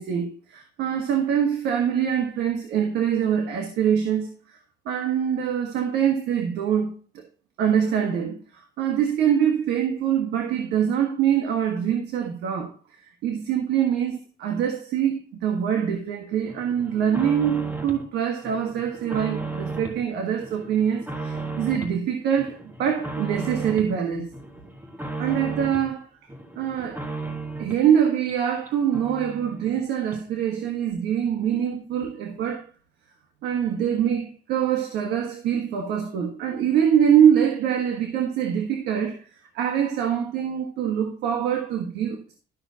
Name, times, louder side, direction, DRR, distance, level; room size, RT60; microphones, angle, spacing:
voice 1, 0.0-4.6 4.8-7.2 7.6-12.7 13.2-24.3 25.2-26.1 26.5-27.0 27.6-32.7 33.4-42.2, right 9 dB, 80° right, 1.4 m, -24 dB
sound 1, 16.5-18.1 18.4-20.0 20.4-22.0 22.4-23.9 24.3-25.9 26.3-27.9 28.3-28.4 28.7-28.8 28.9-29.8 30.1-30.2, right 3 dB, 10° right, 1.5 m, -34 dB
12.5 x 6.2 x 2.7 m
cardioid pair, 110°, 17 cm